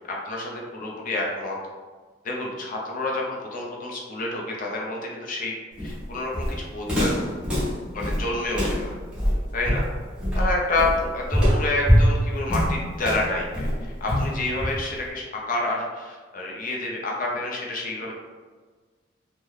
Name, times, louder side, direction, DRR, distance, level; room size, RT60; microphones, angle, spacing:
voice 1, 0.1-1.6 2.2-5.5 5.8-7.1 7.9-8.9 9.5-9.8 10.3-18.1, left 2 dB, 45° left, -2 dB, 0.5 m, -28 dB
Walk footsteps, 5.8-15.0, equal, 5° right, 1.0 m, -23 dB
3.1 x 2.1 x 3.6 m, 1.4 s
head